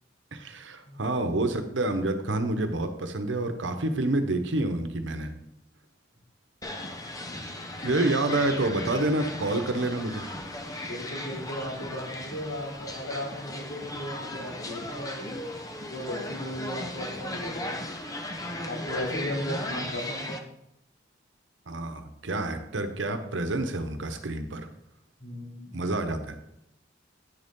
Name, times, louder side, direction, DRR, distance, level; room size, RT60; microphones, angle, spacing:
voice 1, 0.3-5.3 7.8-10.2 21.7-24.7 25.7-26.4, right 2 dB, 85° right, 7 dB, 1.0 m, -28 dB
voice 2, 0.9-1.2 7.7-8.1 10.8-15.3 15.9-17.8 18.6-20.4 25.2-25.9, equal, 65° left, -3 dB, 2.8 m, -36 dB
sound 1, 6.6-20.4, left 1 dB, 20° left, 0.7 m, -37 dB
9.6 x 6.6 x 3.7 m, 0.80 s
head